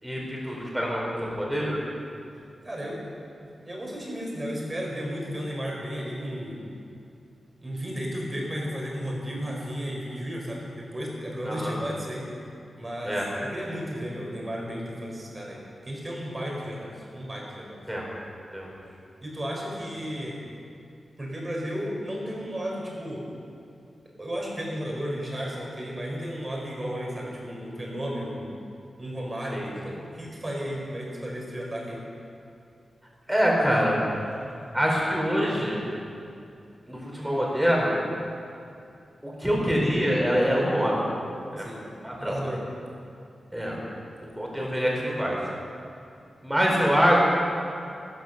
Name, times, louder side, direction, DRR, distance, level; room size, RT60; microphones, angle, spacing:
voice 1, 0.0-1.8 11.4-11.7 13.0-13.3 17.9-18.1 18.5-18.7 29.5-29.7 33.3-34.0 34.7-35.8 36.9-38.0 39.2-41.1 41.5-41.7 42.0-42.4 43.5-43.8 44.2-45.4 46.4-47.2, equal, 5° right, -3 dB, 4.4 m, -25 dB
voice 2, 2.6-3.0 3.4-6.6 7.6-12.2 12.8-17.7 19.2-20.4 21.2-23.3 24.2-28.5 29.0-32.0 41.6-41.8 42.2-42.6, equal, 25° right, -2 dB, 4.7 m, -33 dB
15.0 x 14.5 x 6.7 m, 2.5 s
wide cardioid pair, 130°, 0 cm